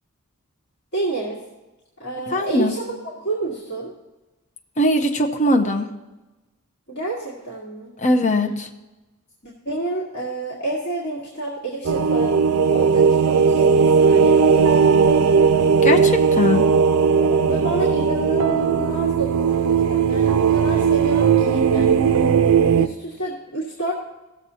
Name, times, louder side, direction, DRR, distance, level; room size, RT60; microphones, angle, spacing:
voice 1, 0.9-1.4 2.0-3.9 6.9-7.9 9.4-12.4 12.7-15.3 17.2-22.0 22.8-23.9, right 2 dB, 50° left, -7 dB, 1.9 m, -29 dB
voice 2, 2.3-2.7 4.8-5.9 8.0-8.7 15.8-16.6, left 1 dB, 35° left, 3 dB, 0.7 m, -20 dB
sound 1, 11.8-22.9, right 6 dB, 75° right, 0.5 m, -17 dB
16.5 x 7.3 x 2.8 m, 1.1 s
head